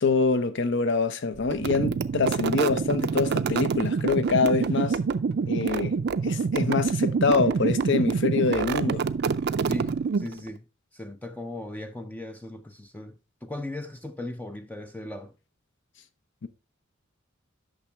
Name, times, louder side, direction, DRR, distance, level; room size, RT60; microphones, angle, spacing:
voice 1, 0.0-5.0 5.5-6.0 6.2-9.0 16.4-16.5, left 4 dB, 60° left, 0.7 m, -25 dB
sound 1, 1.5-10.5, right 5 dB, 55° right, 0.4 m, -26 dB
voice 2, 9.7-10.6 10.9-15.3, left 1 dB, 10° left, 0.4 m, -38 dB
8.7 x 6.1 x 3.3 m
head